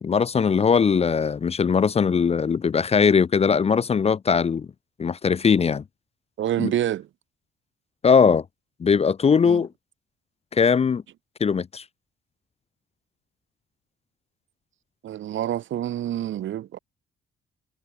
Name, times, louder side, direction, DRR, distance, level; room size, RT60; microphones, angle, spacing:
voice 1, 0.0-4.7 5.0-5.8 6.6-6.7 8.0-8.4 8.8-9.7 10.5-11.0 11.4-11.8, left 6 dB, 30° left, 0.6 m, -20 dB
voice 2, 6.4-7.1 9.4-9.6 15.0-16.8, right 12 dB, 75° right, 4.9 m, -27 dB
cardioid pair, 90°, 20 cm